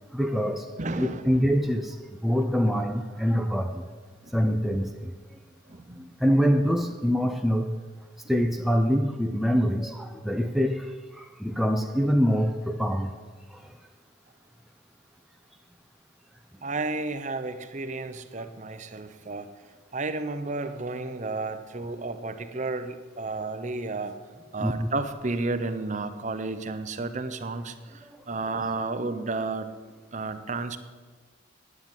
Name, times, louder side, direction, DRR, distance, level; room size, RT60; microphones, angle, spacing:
voice 1, 0.0-0.7 1.0-3.8 4.3-5.1 6.0-7.7 8.3-13.2 13.5-13.8 24.6-24.9 28.0-28.2, equal, ahead, 0.5 m, -25 dB
voice 2, 0.8-1.2 4.2-4.3 5.7-6.1 16.6-19.5 19.9-24.2 24.5-29.7 30.1-30.8, right 3 dB, 35° right, 0.8 m, -32 dB
9.7 x 9.6 x 8.9 m
head